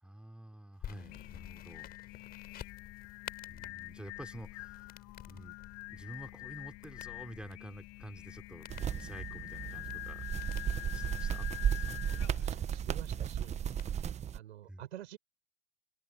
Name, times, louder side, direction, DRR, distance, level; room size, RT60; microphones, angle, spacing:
voice 1, 0.0-1.9 3.5-4.9 5.3-5.6 5.9-10.2 10.9-11.5 11.7-12.2 14.7-14.8, right 1 dB, 5° right, 3.1 m, -49 dB
sound 1, 0.8-13.9, left 10 dB, 30° left, 4.9 m, -52 dB
Singing, 0.9-12.6, left 29 dB, 50° left, 5.0 m, -46 dB
sound 2, 8.7-14.4, right 9 dB, 20° right, 1.1 m, -35 dB
voice 2, 12.4-13.6 14.3-15.2, right 12 dB, 80° right, 6.2 m, -48 dB
open air
hypercardioid pair, 130°, 33 cm